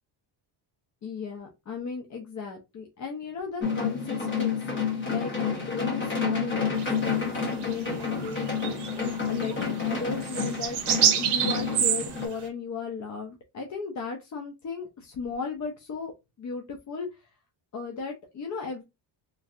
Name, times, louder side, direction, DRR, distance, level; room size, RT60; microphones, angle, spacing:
voice 1, 1.0-10.8 11.2-17.3 17.7-18.8, left 5 dB, 40° left, 3 dB, 0.5 m, -36 dB
sound 1, 3.6-12.3, left 5 dB, 25° left, 1.0 m, -29 dB
sound 2, 6.8-7.0 7.6-7.7 8.0-12.3, right 9 dB, 55° right, 0.7 m, -27 dB
3.2 x 2.6 x 2.4 m, 0.24 s
cardioid pair, 150°, 47 cm